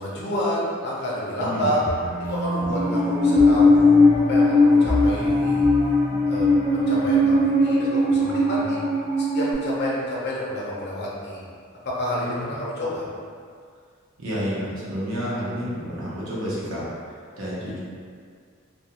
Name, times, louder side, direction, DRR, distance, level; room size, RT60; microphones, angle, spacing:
voice 1, 0.0-1.8 2.3-3.8 4.3-5.7 6.2-8.8 9.2-11.4 11.8-13.1, left 1 dB, 55° left, -6 dB, 0.7 m, -29 dB
voice 2, 1.4-1.7 4.5-4.7 5.0-5.4 8.2-8.7 12.2-12.5 14.2-16.9 17.4-17.8, equal, 80° right, -7 dB, 0.8 m, -31 dB
sound 1, 1.9-7.9, equal, 10° right, 0.3 m, -30 dB
Musical instrument, 2.7-9.5, left 2 dB, 45° right, 0.7 m, -19 dB
2.4 x 2.3 x 2.9 m, 2.1 s
head